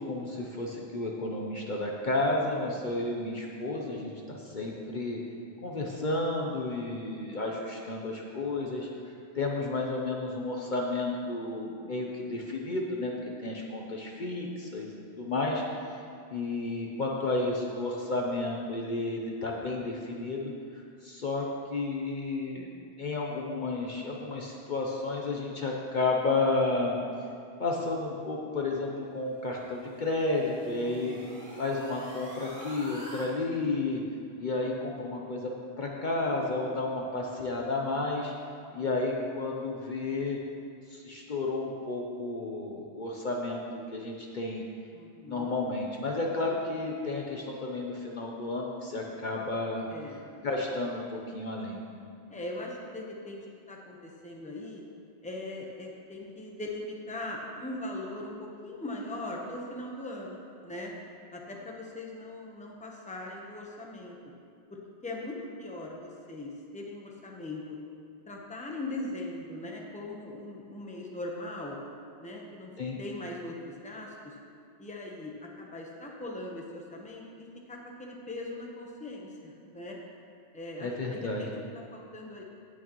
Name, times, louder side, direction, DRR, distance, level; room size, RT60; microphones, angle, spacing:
voice 1, 0.0-5.2 5.6-8.9 9.3-13.1 13.4-15.6 16.3-20.5 21.0-21.5 21.7-22.7 23.0-27.0 27.6-31.2 31.6-34.0 34.4-35.5 35.8-38.3 38.7-40.4 40.9-43.6 43.9-44.6 45.2-49.9 50.4-51.8 72.8-73.0 80.8-81.4, left 2 dB, 50° left, -1 dB, 0.9 m, -32 dB
sound 1, 29.3-33.3, equal, 30° right, 1.9 m, -46 dB
voice 2, 30.7-31.3 34.4-34.5 38.7-38.9 44.9-45.5 49.9-50.3 52.3-54.8 55.2-60.9 61.3-64.2 64.7-67.8 68.3-71.8 72.2-72.7 73.0-74.4 74.8-80.0 80.5-82.4, left 2 dB, 5° left, -1 dB, 0.9 m, -40 dB
17.0 x 6.3 x 3.1 m, 2.4 s
omnidirectional pair, 1.1 m